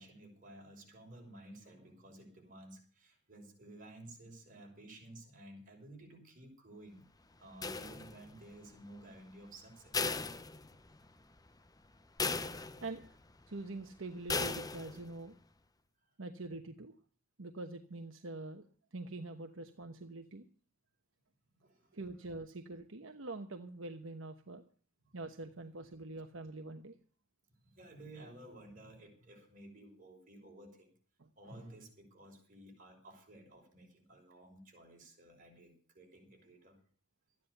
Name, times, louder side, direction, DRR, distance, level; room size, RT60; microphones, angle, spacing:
voice 1, 0.0-7.1 7.4-10.1 16.0-16.1 21.5-22.0 25.0-25.2 27.6-30.9 31.4-36.8, right 1 dB, 40° right, 1 dB, 6.1 m, -54 dB
sound 1, 7.6-8.4 9.9-11.1 11.5-11.6 12.2-13.1 14.3-15.1, left 4 dB, 20° left, 0.7 m, -37 dB
voice 2, 12.8-13.2 13.5-15.4 16.2-16.9 17.4-18.7 18.9-20.4 21.9-24.6 25.1-27.0 31.2-31.3, right 2 dB, 75° right, 6 dB, 1.1 m, -45 dB
14.0 x 10.5 x 6.7 m, 0.41 s
head